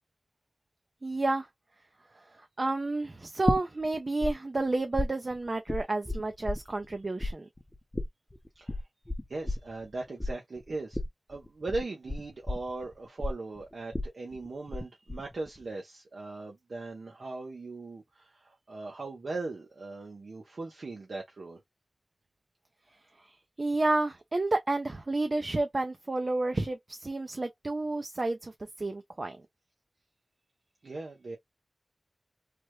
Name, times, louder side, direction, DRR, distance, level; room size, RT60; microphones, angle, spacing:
voice 1, 1.0-1.5 2.6-7.5 23.6-28.5 28.8-29.4, right 2 dB, 50° right, 0.5 m, -30 dB
sound 1, 3.5-4.3 4.6-6.9 7.2-14.8 15.1-15.6, left 1 dB, 25° left, 0.7 m, -33 dB
voice 2, 9.3-11.0 11.3-21.6 30.8-31.4, right 3 dB, 80° right, 0.7 m, -39 dB
3.4 x 2.1 x 3.0 m
cardioid pair, 45°, 0 cm